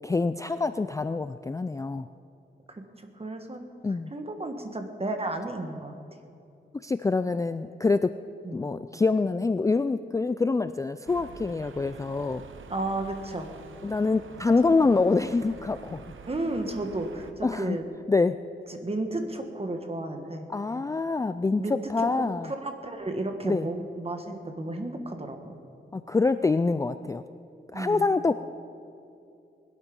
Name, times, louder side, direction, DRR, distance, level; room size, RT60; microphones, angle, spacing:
voice 1, 0.0-2.1 3.8-4.1 6.8-8.2 8.5-12.4 13.8-16.0 17.4-17.8 18.1-18.4 20.5-22.5 23.4-23.7 25.9-27.2 27.7-28.3, left 3 dB, 15° left, 11 dB, 0.3 m, -25 dB
voice 2, 2.7-3.6 4.1-6.0 8.4-8.6 12.7-13.5 14.7-15.0 16.3-17.8 18.7-20.5 21.6-25.6 27.7-28.0, right 2 dB, 30° right, 5 dB, 1.6 m, -33 dB
sound 1, 11.1-17.3, right 5 dB, 85° right, 1.0 m, -47 dB
20.5 x 12.0 x 5.4 m, 2.6 s
wide cardioid pair, 90°, 20 cm